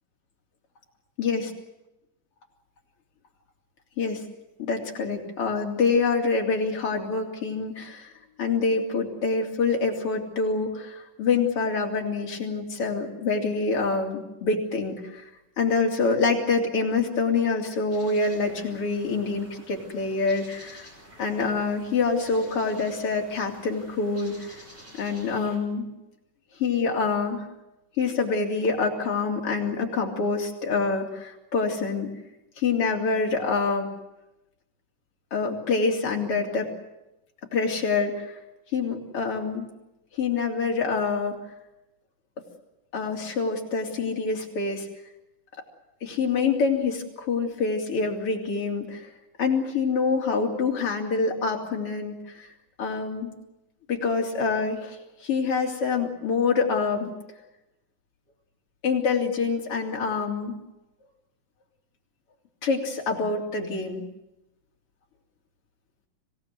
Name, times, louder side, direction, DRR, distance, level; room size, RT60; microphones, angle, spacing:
voice 1, 4.6-8.1 8.4-15.3 15.6-20.9 21.2-24.6 24.9-25.9 26.6-27.5 28.0-32.1 32.6-33.9 35.3-36.7 37.5-38.3 38.7-39.7 40.1-41.4 42.9-44.9 46.0-49.1 49.4-52.5 52.8-53.3 53.9-55.0 55.2-57.1 58.8-60.5 62.6-64.1, left 4 dB, 45° left, 0 dB, 4.0 m, -26 dB
sound 1, 17.9-25.6, equal, 20° right, 5.2 m, -49 dB
26.0 x 17.5 x 9.4 m, 0.94 s
omnidirectional pair, 3.6 m